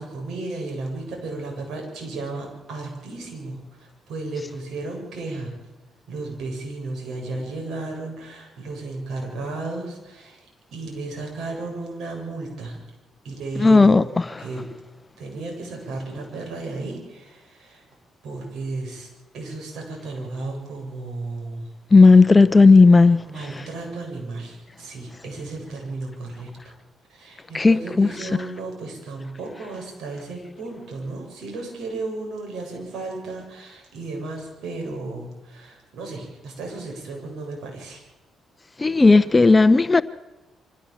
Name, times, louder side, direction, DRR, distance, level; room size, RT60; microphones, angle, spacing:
voice 1, 0.0-5.5 6.1-12.8 13.2-14.1 14.4-14.6 15.2-17.9 18.2-19.1 19.3-21.7 22.1-22.2 23.2-26.7 27.1-38.0, right 3 dB, 75° right, 7.7 m, -34 dB
voice 2, 13.6-14.0 14.3-14.4 21.9-23.2 27.5-28.1 38.8-40.0, left 3 dB, 20° left, 0.8 m, -13 dB
25.0 x 15.5 x 7.4 m
cardioid pair, 90°, 0 cm